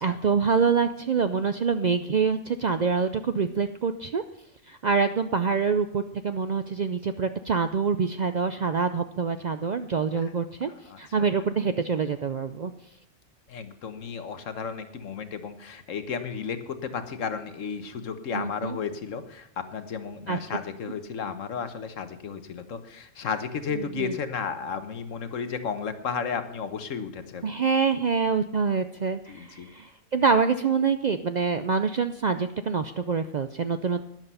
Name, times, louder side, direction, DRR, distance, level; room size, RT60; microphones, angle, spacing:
voice 1, 0.0-4.2 4.7-10.7 11.0-12.7 18.3-18.8 20.3-20.4 23.7-24.1 27.4-34.0, right 5 dB, 75° right, 9 dB, 0.4 m, -26 dB
voice 2, 10.9-11.3 13.5-27.5 29.3-29.7, left 6 dB, 70° left, 9 dB, 1.4 m, -33 dB
12.5 x 10.5 x 5.5 m, 0.79 s
omnidirectional pair, 1.4 m